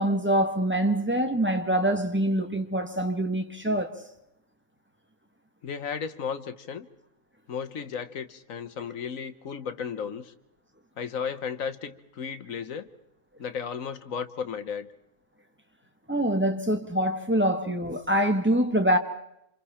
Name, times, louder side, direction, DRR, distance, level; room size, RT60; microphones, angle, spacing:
voice 1, 0.0-3.9 16.1-19.0, right 1 dB, 5° right, 1.5 m, -25 dB
voice 2, 5.6-6.9 7.5-10.3 11.0-12.9 13.4-14.9, left 6 dB, 60° left, 1.3 m, -34 dB
28.0 x 26.5 x 4.3 m
omnidirectional pair, 1.7 m